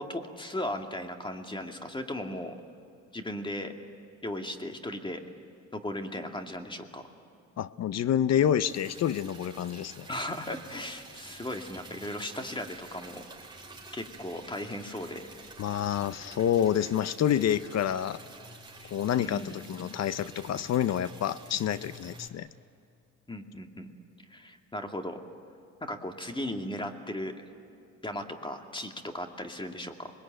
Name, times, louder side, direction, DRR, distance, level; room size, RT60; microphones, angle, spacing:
voice 1, 0.0-2.6 3.1-3.7 4.2-5.2 5.7-7.0 10.1-13.2 13.9-15.2 18.8-18.9 19.2-19.7 23.3-23.9 24.3-25.2 25.8-27.3 28.0-30.1, left 1 dB, 15° left, 5 dB, 2.3 m, -37 dB
voice 2, 7.6-10.1 15.6-18.2 18.9-22.5, left 10 dB, 60° left, 15 dB, 0.7 m, -28 dB
Liquid, 8.6-22.3, right 2 dB, 15° right, 4.9 m, -49 dB
26.0 x 21.0 x 9.1 m, 2.7 s
cardioid pair, 90°, 30 cm